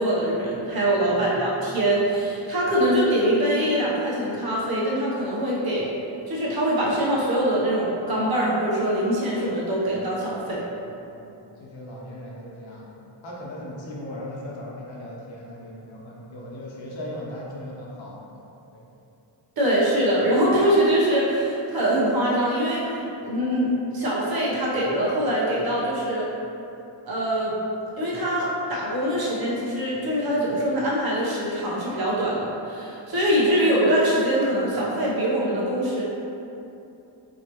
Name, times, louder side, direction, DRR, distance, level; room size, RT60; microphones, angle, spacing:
voice 1, 0.0-5.9 6.3-10.6 19.6-22.8 23.2-26.3 27.1-27.5 28.0-36.0, right 1 dB, 50° right, -6 dB, 1.0 m, -23 dB
voice 2, 1.0-1.4 11.1-18.3 18.7-18.8, left 1 dB, 75° left, -4 dB, 0.9 m, -38 dB
3.9 x 2.9 x 3.0 m, 2.9 s
wide cardioid pair, 125°, 46 cm